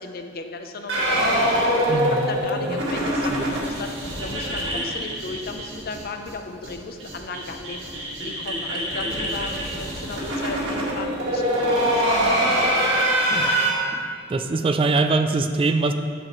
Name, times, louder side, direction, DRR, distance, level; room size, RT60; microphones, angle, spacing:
voice 1, 0.0-1.6 2.1-7.8 8.2-12.6, left 3 dB, 55° left, 5 dB, 0.6 m, -35 dB
sound 1, 0.9-6.0 6.3-6.4 6.6-6.7 7.0-13.7, equal, 75° right, 1.9 m, -24 dB
voice 2, 1.9-2.8 3.3-3.4 13.3-13.6 13.9-14.0 14.3-15.9, right 3 dB, 30° right, 8 dB, 0.3 m, -23 dB
9.0 x 7.5 x 3.1 m, 2.1 s
head